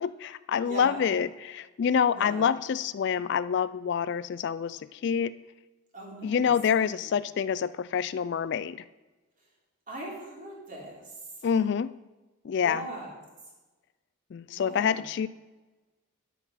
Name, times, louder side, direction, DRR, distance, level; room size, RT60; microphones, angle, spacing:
voice 1, 0.0-5.3 6.2-8.8 11.4-11.9 12.4-12.8 14.3-15.3, left 7 dB, 50° left, 16 dB, 0.3 m, -27 dB
voice 2, 0.6-1.1 2.1-2.5 5.9-6.5 7.0-7.1 9.9-11.5 12.5-13.1 14.5-15.0, right 1 dB, 40° right, -3 dB, 3.5 m, -40 dB
10.0 x 8.4 x 5.6 m, 1.2 s
head